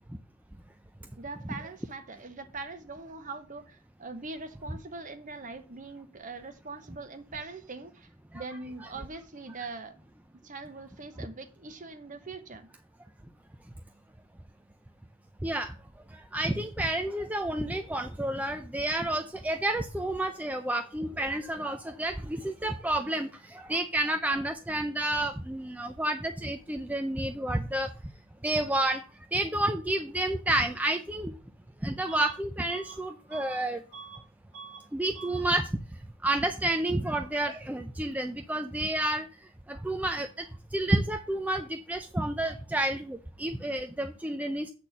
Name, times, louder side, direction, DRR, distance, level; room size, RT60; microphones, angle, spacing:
voice 1, 1.2-8.1 8.3-10.0 10.3-12.7, right 3 dB, 35° right, 1.0 m, -42 dB
voice 2, 15.4-15.7 16.1-27.9 28.4-29.0 29.3-31.3 31.8-33.8 34.9-35.7 36.2-39.3 39.7-40.5 40.7-44.7, right 1 dB, 5° right, 0.4 m, -30 dB
Bus / Alarm, 32.1-32.4 32.7-34.3 34.5-34.9 35.1-35.5, right 6 dB, 75° right, 2.2 m, -46 dB
8.1 x 4.3 x 7.1 m
head